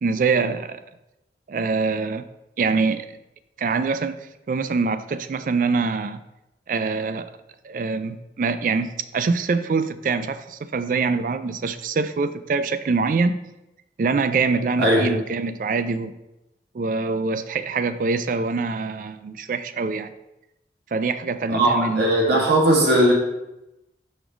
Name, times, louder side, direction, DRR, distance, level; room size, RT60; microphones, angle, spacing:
voice 1, 0.0-0.8 1.5-2.3 2.6-3.1 3.6-4.2 4.5-6.2 6.7-7.3 7.6-13.4 14.0-16.1 16.7-20.1 20.9-22.1, right 4 dB, 45° right, 12 dB, 0.3 m, -24 dB
voice 2, 21.5-23.1, right 1 dB, 65° right, -1 dB, 1.5 m, -18 dB
6.0 x 5.1 x 3.8 m, 0.94 s
head